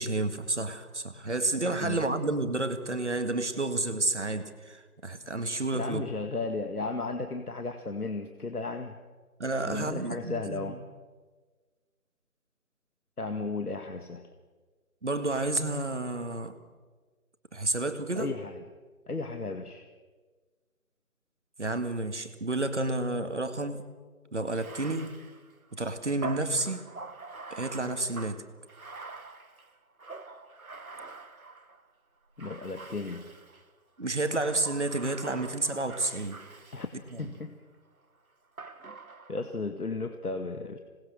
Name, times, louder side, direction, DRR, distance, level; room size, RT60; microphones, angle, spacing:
voice 1, 0.0-6.0 9.4-10.7 15.0-16.6 17.5-18.3 21.6-23.8 24.3-25.2 25.7-26.9 27.5-28.4 34.0-36.4 37.1-37.2, right 2 dB, 50° right, 9 dB, 1.9 m, -30 dB
voice 2, 5.7-9.0 9.6-10.8 13.2-14.3 18.2-18.6 19.1-19.9 32.4-33.3 36.7-37.6 39.3-40.8, left 3 dB, 75° left, 6 dB, 2.0 m, -35 dB
Bathtub (filling or washing), 24.5-31.8 32.4-33.7 34.2-37.4 38.6-39.5, right 3 dB, 65° right, 1.8 m, -45 dB
26.5 x 20.0 x 6.6 m, 1.4 s
figure-of-eight pair, 175°, 45 cm